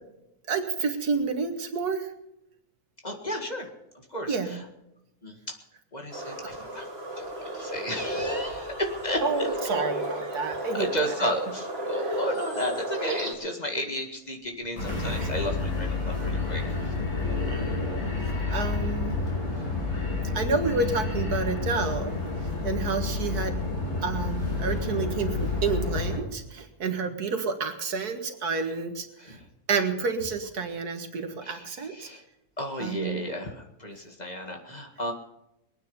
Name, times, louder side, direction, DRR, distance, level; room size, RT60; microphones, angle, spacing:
voice 1, 0.5-2.1 4.3-4.6 9.2-10.9 11.2-11.3 12.0-12.2 15.2-15.3 16.8-16.9 17.5-19.2 20.3-22.2 22.6-23.6 24.0-29.4 29.7-32.1 32.8-33.2, right 4 dB, 85° right, 6 dB, 2.2 m, -30 dB
voice 2, 3.0-3.7 4.1-4.7 5.2-5.6 5.9-6.9 7.2-9.5 10.7-16.9 29.2-29.5 31.4-32.2 32.6-35.1, equal, 25° left, 3 dB, 1.9 m, -33 dB
sound 1, 6.1-13.3, right 1 dB, 40° right, 2.6 m, -33 dB
sound 2, 14.8-26.2, left 3 dB, 80° left, 5.3 m, -29 dB
22.0 x 9.5 x 5.5 m, 0.86 s
omnidirectional pair, 1.6 m